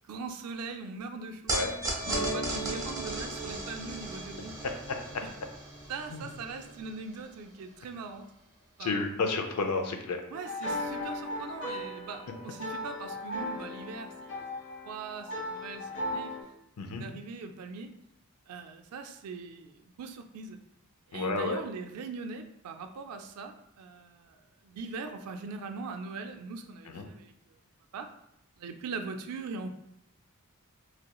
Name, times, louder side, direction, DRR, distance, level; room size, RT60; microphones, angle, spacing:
voice 1, 0.1-1.6 2.1-4.8 5.9-8.2 8.8-9.0 10.3-14.4 14.8-16.3 16.8-17.9 18.5-20.6 21.1-24.3 24.6-27.3 27.9-28.1 28.6-29.7, right 4 dB, 80° right, 6 dB, 0.4 m, -41 dB
sound 1, 1.5-7.9, right 1 dB, 15° right, 0.9 m, -37 dB
sound 2, 2.0-6.9, right 1 dB, 35° left, 0.9 m, -40 dB
voice 2, 8.8-10.2 16.8-17.1 21.1-21.6 26.9-27.0, left 3 dB, 90° left, 5 dB, 0.5 m, -31 dB
sound 3, 10.3-16.4, left 1 dB, 60° left, 1.1 m, -37 dB
3.2 x 3.0 x 2.2 m, 0.78 s
head